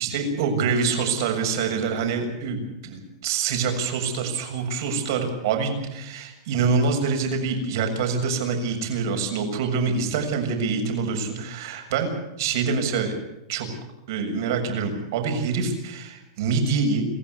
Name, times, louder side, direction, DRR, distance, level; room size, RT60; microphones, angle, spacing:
voice 1, 0.0-12.1 12.4-13.1 13.5-13.7 14.1-17.1, right 5 dB, 60° right, 4 dB, 7.0 m, -25 dB
27.0 x 15.0 x 8.3 m, 0.89 s
supercardioid pair, 155°, 2 cm